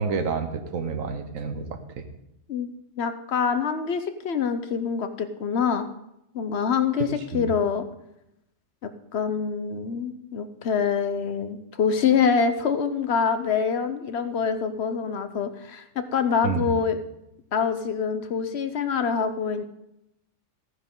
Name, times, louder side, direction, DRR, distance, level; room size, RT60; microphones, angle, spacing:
voice 1, 0.0-2.0 7.3-7.5 16.4-16.7, right 5 dB, 90° right, 7 dB, 1.5 m, -29 dB
voice 2, 2.5-5.9 6.3-7.8 8.8-17.0 17.5-19.6, left 6 dB, 60° left, 10 dB, 1.0 m, -25 dB
15.0 x 9.7 x 3.7 m, 0.84 s
omnidirectional pair, 1.4 m